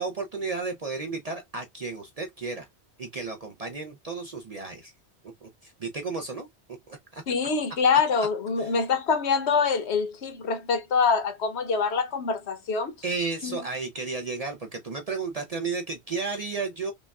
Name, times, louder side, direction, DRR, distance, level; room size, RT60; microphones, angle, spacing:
voice 1, 0.0-2.7 3.0-4.9 5.4-6.5 6.9-7.2 8.6-8.7 13.0-16.9, right 4 dB, 45° right, 0.5 m, -33 dB
voice 2, 7.3-12.9 13.4-13.6, left 5 dB, 75° left, 1.1 m, -25 dB
5.1 x 2.3 x 2.3 m
omnidirectional pair, 1.1 m